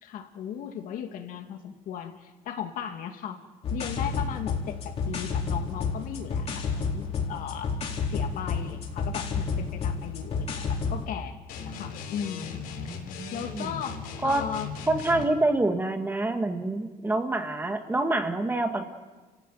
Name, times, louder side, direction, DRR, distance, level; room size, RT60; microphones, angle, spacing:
voice 1, 0.0-3.4 3.7-7.7 8.1-12.6 13.3-14.7 15.2-15.3, left 9 dB, 65° left, 5 dB, 2.4 m, -37 dB
sound 1, 3.6-11.0, left 5 dB, 45° left, 4.4 m, -30 dB
sound 2, 11.5-15.3, left 6 dB, 85° left, 3.8 m, -38 dB
voice 2, 12.9-13.7 14.2-14.4 14.9-18.8, right 2 dB, 15° right, 6 dB, 1.7 m, -27 dB
30.0 x 15.5 x 9.2 m, 1.3 s
cardioid pair, 145°, 15 cm